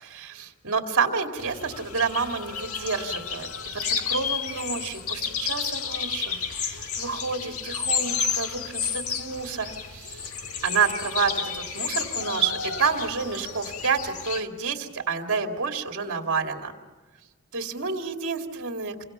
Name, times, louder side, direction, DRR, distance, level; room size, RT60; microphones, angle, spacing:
voice 1, 0.0-3.5 3.7-10.3 10.6-16.7 17.5-19.1, right 5 dB, 60° right, 4 dB, 2.5 m, -29 dB
sound 1, 1.4-14.4, left 6 dB, 70° left, 1.7 m, -31 dB
28.5 x 24.5 x 5.8 m, 1.3 s
head